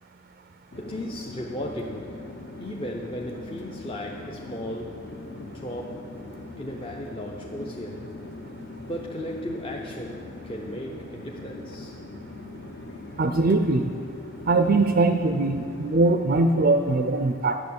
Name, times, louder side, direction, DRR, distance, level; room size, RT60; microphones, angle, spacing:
Chatter / Fixed-wing aircraft airplane, 0.7-16.2, left 2 dB, 50° left, 0.8 m, -41 dB
voice 1, 0.8-2.3 2.6-5.1 5.4-6.1 6.6-8.1 8.9-12.0, equal, 25° left, -1 dB, 0.6 m, -36 dB
voice 2, 13.2-13.9 14.5-17.6, right 2 dB, 40° right, 7 dB, 0.4 m, -21 dB
10.5 x 6.9 x 8.5 m, 2.4 s
head